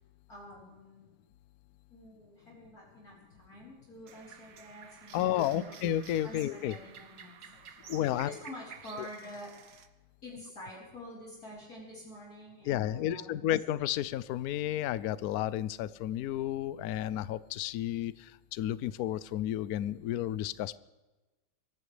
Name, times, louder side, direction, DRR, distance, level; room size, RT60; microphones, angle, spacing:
voice 1, 0.3-1.1 1.9-5.8 6.2-9.9 10.2-13.5, equal, 45° left, -6 dB, 4.4 m, -48 dB
sound 1, 4.1-9.9, right 7 dB, 55° right, 1.2 m, -52 dB
voice 2, 5.1-6.8 7.9-8.3 9.0-9.1 12.7-20.8, left 12 dB, 75° left, 17 dB, 0.8 m, -32 dB
25.5 x 14.0 x 3.3 m, 1.1 s
omnidirectional pair, 2.2 m